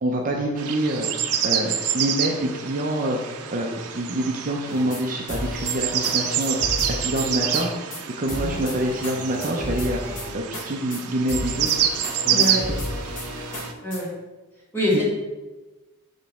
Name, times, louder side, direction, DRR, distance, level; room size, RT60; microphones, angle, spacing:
voice 1, 0.0-10.0 10.3-11.9 12.2-12.8, right 1 dB, 35° right, 0 dB, 0.6 m, -27 dB
sound 1, 0.6-13.7, right 9 dB, 85° right, 0.6 m, -27 dB
sound 2, 4.7-5.0 5.3-7.7 7.9-8.0 8.3-10.6 10.9-11.0 11.3-14.0, left 1 dB, 35° left, 1.3 m, -32 dB
voice 2, 12.3-12.7 13.8-14.1 14.7-15.0, equal, 10° left, -7 dB, 1.9 m, -24 dB
6.5 x 3.1 x 5.8 m, 1.2 s
head